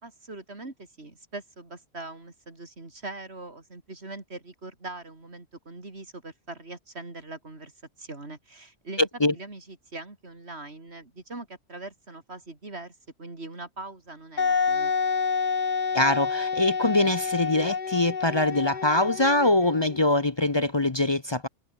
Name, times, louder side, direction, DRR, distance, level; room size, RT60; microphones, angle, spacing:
voice 1, 0.0-7.7 8.0-9.1 9.3-14.9, right 2 dB, 80° right, 4.0 m, -42 dB
Wind instrument woodwind instrument, 14.4-20.0, left 5 dB, 50° left, 1.2 m, -28 dB
voice 2, 15.9-21.5, left 2 dB, 25° left, 0.8 m, -23 dB
omnidirectional pair, 1.1 m